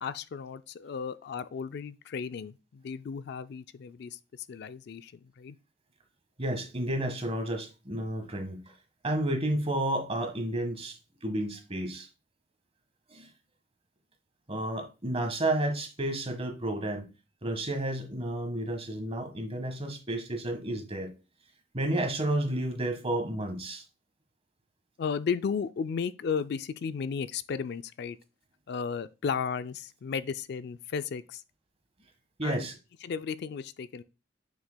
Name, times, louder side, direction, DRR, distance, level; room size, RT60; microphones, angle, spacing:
voice 1, 0.0-5.6 25.0-28.2 28.7-31.4 32.4-32.7 33.0-34.0, left 6 dB, 60° left, 0.4 m, -34 dB
voice 2, 6.4-8.6 9.0-12.1 13.1-13.3 14.5-17.1 17.4-21.1 21.7-23.8 32.4-32.7, right 1 dB, 35° right, 1.4 m, -31 dB
7.2 x 6.1 x 2.2 m
head